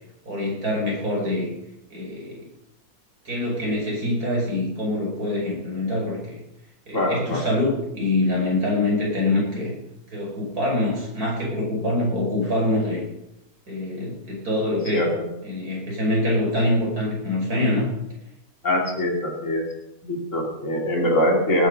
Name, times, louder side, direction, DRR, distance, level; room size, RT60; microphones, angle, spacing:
voice 1, 0.2-1.5 1.9-2.5 3.2-6.4 6.9-9.7 10.1-13.0 13.7-15.0 15.4-17.9, left 1 dB, 70° right, -2 dB, 6.1 m, -24 dB
voice 2, 6.9-7.4 14.9-15.3 18.6-19.7 20.0-21.7, left 1 dB, 50° left, 0 dB, 3.3 m, -23 dB
19.0 x 10.0 x 5.3 m, 0.87 s
omnidirectional pair, 1.6 m